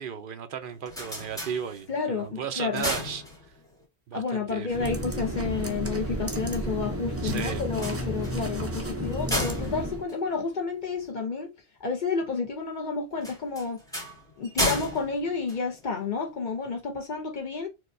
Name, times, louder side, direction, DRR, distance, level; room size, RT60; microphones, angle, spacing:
voice 1, 0.0-3.2 4.1-5.0 7.2-7.7, right 7 dB, 60° right, 0.7 m, -35 dB
sound 1, 0.6-2.1 2.5-3.8 7.6-11.1 13.2-16.2, equal, 5° left, 1.0 m, -34 dB
voice 2, 1.9-2.9 4.1-11.5 11.8-13.8 14.4-17.7, left 4 dB, 50° left, 0.7 m, -30 dB
sound 2, 4.7-10.0, equal, 25° right, 0.3 m, -32 dB
4.5 x 2.2 x 2.5 m
omnidirectional pair, 1.1 m